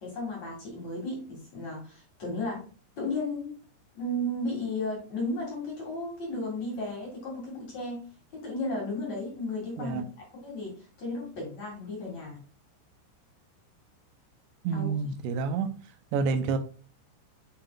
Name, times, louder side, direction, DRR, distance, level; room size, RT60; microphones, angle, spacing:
voice 1, 0.0-2.6 3.0-3.6 3.9-8.0 8.3-10.0 10.4-12.4 14.7-15.1, left 2 dB, 45° left, -1 dB, 2.9 m, -34 dB
voice 2, 14.6-15.7 16.1-16.6, right 5 dB, 85° right, 9 dB, 2.9 m, -28 dB
8.7 x 5.6 x 2.4 m, 0.38 s
omnidirectional pair, 5.1 m